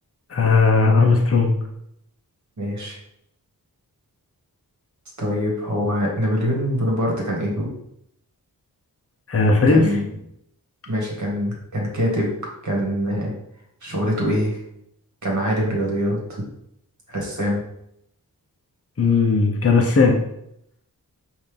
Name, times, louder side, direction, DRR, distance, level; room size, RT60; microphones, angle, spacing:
voice 1, 0.3-1.5 9.3-10.0 19.0-20.2, left 4 dB, 40° left, 1 dB, 0.8 m, -17 dB
voice 2, 2.6-3.0 5.2-7.7 9.7-10.1 10.9-12.3 12.6-13.3 13.8-14.6 15.2-16.4 17.1-17.6, equal, 50° right, -2 dB, 1.7 m, -24 dB
5.5 x 2.8 x 3.4 m, 0.76 s
wide cardioid pair, 75°, 38 cm